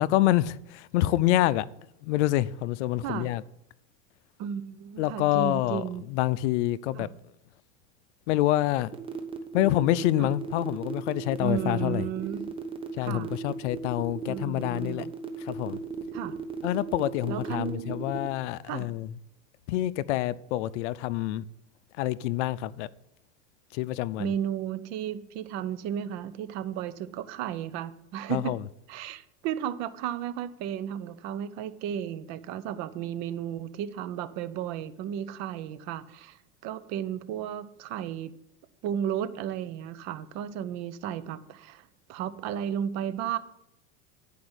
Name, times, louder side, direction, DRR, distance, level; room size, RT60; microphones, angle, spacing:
voice 1, 0.0-1.7 2.0-3.4 5.0-5.8 6.1-7.1 8.3-8.9 9.5-12.1 12.9-15.1 15.4-15.8 16.6-19.1 19.7-21.5 22.0-22.9 23.7-24.3 28.3-28.6, left 15 dB, 75° left, 0.6 m, -27 dB
voice 2, 4.4-6.1 6.9-7.1 10.2-10.3 11.4-12.5 13.0-13.3 14.3-15.1 16.1-16.4 17.3-18.0 18.7-18.9 24.2-28.6 28.9-38.3 38.8-43.4, right 9 dB, 50° right, 0.8 m, -34 dB
sound 1, 8.9-18.3, right 6 dB, 15° right, 1.0 m, -36 dB
10.5 x 5.1 x 8.0 m
supercardioid pair, 125°, 36 cm